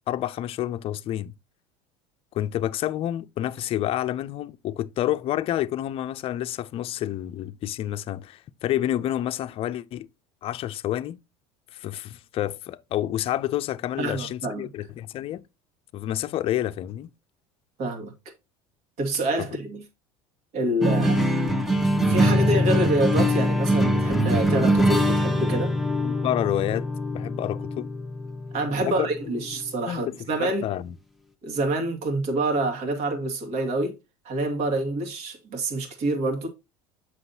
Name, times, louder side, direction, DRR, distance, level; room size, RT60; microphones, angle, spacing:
voice 1, 0.1-1.3 2.3-10.1 10.4-11.2 11.7-15.4 15.9-17.1 26.0-26.9 27.1-27.9 28.8-29.1 29.9-30.1 30.4-30.9, left 13 dB, 45° left, 0.5 m, -29 dB
voice 2, 14.0-14.6 17.8-18.1 19.0-19.8 20.5-21.3 22.1-25.7 28.5-30.6 31.4-34.0 34.2-36.5, right 2 dB, 55° right, 2.3 m, -27 dB
sound 1, 20.8-29.5, equal, ahead, 1.0 m, -23 dB
7.8 x 6.2 x 2.8 m
supercardioid pair, 95°, 13 cm